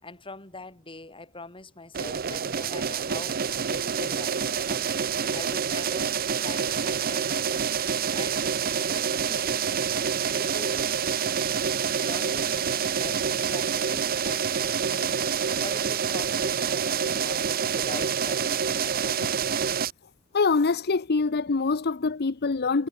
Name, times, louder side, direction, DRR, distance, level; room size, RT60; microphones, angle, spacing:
voice 1, 0.0-3.4 3.7-7.7 8.1-8.5 8.8-9.6 10.3-11.0 12.0-19.3, left 2 dB, 25° left, 5.8 m, -43 dB
sound 1, 1.9-19.9, right 7 dB, 45° right, 0.8 m, -27 dB
sound 2, 2.2-6.5, right 2 dB, 60° right, 6.8 m, -51 dB
voice 2, 20.3-22.9, left 4 dB, 50° left, 0.7 m, -24 dB
head